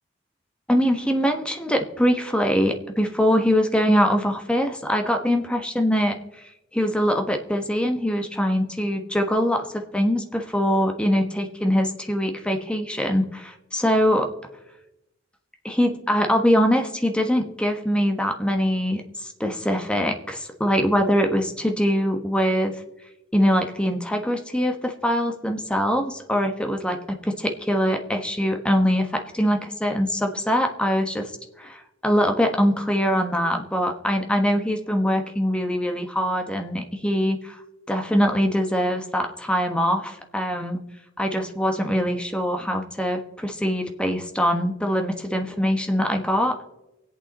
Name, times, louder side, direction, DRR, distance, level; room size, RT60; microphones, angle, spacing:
voice 1, 0.7-6.2 6.7-14.2 15.6-22.7 23.3-27.0 27.2-31.3 31.6-37.6 37.9-40.8 41.2-46.6, equal, 5° left, 4 dB, 1.1 m, -23 dB
24.0 x 8.4 x 4.1 m, 0.92 s
head